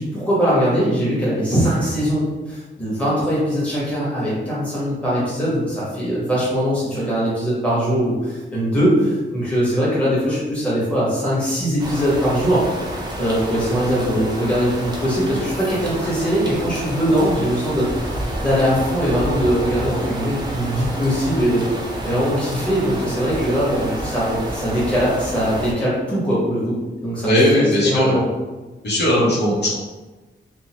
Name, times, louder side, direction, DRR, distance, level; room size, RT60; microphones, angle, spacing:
voice 1, 0.0-12.6 13.2-21.6 22.0-28.2, equal, 5° left, -9 dB, 1.1 m, -21 dB
sound 1, 11.8-25.7, right 1 dB, 20° right, 0.4 m, -29 dB
voice 2, 27.2-28.1 28.8-29.8, left 1 dB, 60° left, -8 dB, 0.9 m, -18 dB
2.7 x 2.0 x 2.9 m, 1.2 s
wide cardioid pair, 145°, 20 cm